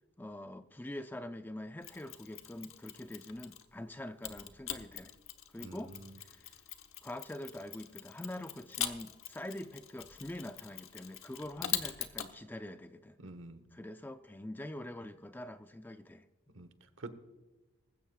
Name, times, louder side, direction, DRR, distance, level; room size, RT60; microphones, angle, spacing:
voice 1, 0.2-5.1 5.5-6.5 7.0-13.2 13.7-16.3, left 1 dB, 10° left, 9 dB, 0.4 m, -44 dB
Mechanisms, 1.8-3.7 4.2-12.3, left 11 dB, 80° left, 1.0 m, -42 dB
voice 2, 5.6-6.0 11.6-11.7 13.2-13.6 16.5-16.7 17.0-17.1, right 2 dB, 65° right, 11 dB, 1.1 m, -47 dB
20.0 x 15.5 x 2.4 m, 1.2 s
head